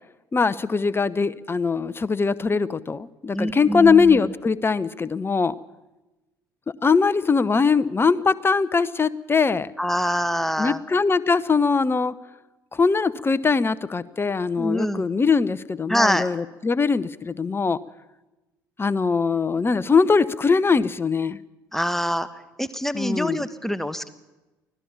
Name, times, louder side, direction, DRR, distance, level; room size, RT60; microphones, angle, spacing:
voice 1, 0.3-5.5 6.8-9.7 10.6-12.1 12.7-17.8 18.8-21.4 22.9-23.4, left 5 dB, 20° left, 17 dB, 0.9 m, -21 dB
voice 2, 3.3-4.2 9.8-10.8 14.6-15.0 15.9-16.3 21.7-22.3 22.6-24.1, equal, 5° left, 14 dB, 1.3 m, -25 dB
24.5 x 16.5 x 7.2 m, 1.1 s
figure-of-eight pair, 55°, 11 cm